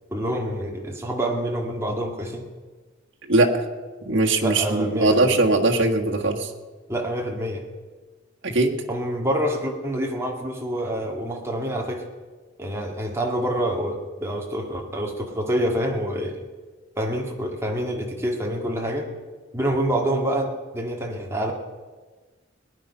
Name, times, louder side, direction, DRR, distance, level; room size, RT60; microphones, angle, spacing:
voice 1, 0.1-2.5 4.4-5.3 6.9-7.7 8.9-12.1 12.6-16.4 17.0-19.1 19.5-21.5, right 1 dB, 15° right, 0 dB, 1.8 m, -27 dB
voice 2, 3.3-3.6 4.0-6.5 8.4-8.7, right 2 dB, 70° right, -1 dB, 1.6 m, -20 dB
19.5 x 10.0 x 5.6 m, 1.4 s
head